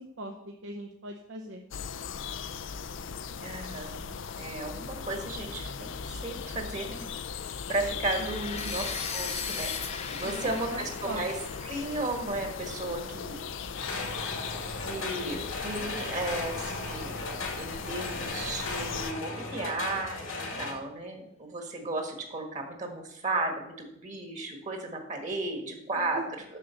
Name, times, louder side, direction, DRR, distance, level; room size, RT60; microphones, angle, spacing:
voice 1, 0.0-1.6 8.2-8.7 10.2-11.2 26.0-26.3, right 1 dB, 70° right, 2 dB, 0.8 m, -40 dB
sound 1, 1.7-19.1, left 6 dB, 70° left, 0.5 m, -38 dB
voice 2, 3.4-4.1 4.4-5.9 6.2-7.0 7.7-9.7 10.1-11.3 11.6-13.4 14.8-15.4 15.6-17.2 17.6-26.4, right 2 dB, 35° right, 3 dB, 1.6 m, -34 dB
sound 2, 8.0-13.9, left 6 dB, 30° left, 0.9 m, -39 dB
sound 3, 13.7-20.7, left 2 dB, 85° left, 2.3 m, -36 dB
7.5 x 6.7 x 7.0 m, 0.79 s
head